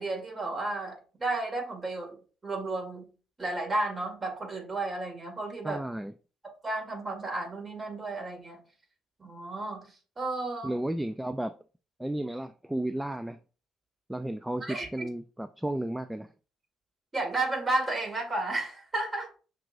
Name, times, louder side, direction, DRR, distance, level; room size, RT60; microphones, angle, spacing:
voice 1, 0.0-3.1 3.4-5.8 6.4-8.6 9.2-9.9 10.2-10.7 14.6-14.9 17.1-19.3, right 2 dB, 30° right, 1.9 m, -32 dB
voice 2, 5.6-6.1 10.6-11.5 12.0-13.4 14.1-16.3, right 1 dB, 5° right, 0.3 m, -33 dB
5.9 x 3.0 x 2.5 m
hypercardioid pair, 50°, 0 cm